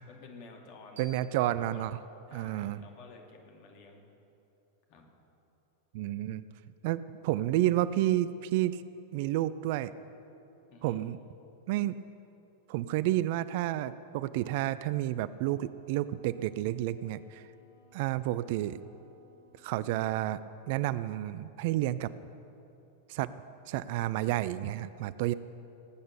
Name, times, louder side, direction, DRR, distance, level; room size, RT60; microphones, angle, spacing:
voice 1, 0.1-1.8 2.3-4.1 4.9-5.1 10.7-11.0, left 4 dB, 45° left, 2 dB, 2.4 m, -52 dB
voice 2, 1.0-2.0 2.3-2.8 5.9-6.4 6.8-8.8 9.1-9.9 10.8-11.2 11.7-12.0 12.7-17.4 17.9-18.8 19.6-20.4 20.7-22.1 23.1-23.3 23.7-25.3, right 14 dB, 50° right, 16 dB, 0.4 m, -30 dB
sound 1, 1.0-3.8, right 3 dB, 65° right, 1.8 m, -59 dB
Wind instrument woodwind instrument, 14.1-20.4, left 2 dB, 70° left, 4.2 m, -65 dB
19.0 x 8.7 x 6.7 m, 3.0 s
figure-of-eight pair, 90°, 0 cm